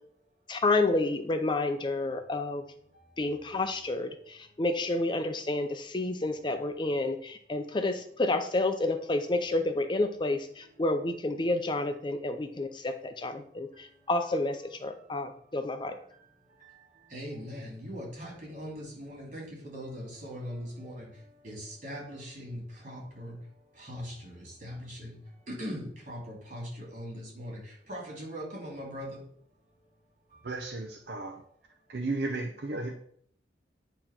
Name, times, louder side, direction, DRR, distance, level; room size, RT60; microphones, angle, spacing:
voice 1, 0.5-2.6 3.2-15.9, left 2 dB, 25° left, 7 dB, 0.5 m, -30 dB
voice 2, 17.1-21.1 21.4-23.4 23.8-25.1 25.5-27.6 27.9-29.2, equal, 45° right, -2 dB, 2.8 m, -40 dB
voice 3, 30.4-31.4 31.9-32.9, right 2 dB, 65° right, 4 dB, 0.6 m, -34 dB
8.7 x 3.0 x 5.8 m, 0.62 s
head